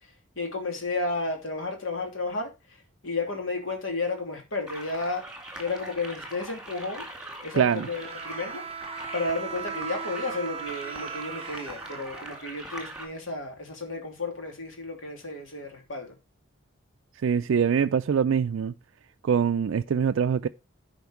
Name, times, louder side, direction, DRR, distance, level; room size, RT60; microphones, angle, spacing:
voice 1, 0.0-5.3 5.6-7.0 7.4-8.6 9.1-16.2, left 3 dB, 75° left, 2.9 m, -32 dB
sound 1, 4.7-13.1, right 1 dB, 5° right, 2.4 m, -42 dB
voice 2, 7.6-7.9 17.2-18.7 19.2-20.5, right 7 dB, 70° right, 0.4 m, -23 dB
Bowed string instrument, 7.7-12.8, right 7 dB, 30° right, 0.7 m, -38 dB
11.0 x 5.2 x 4.7 m
head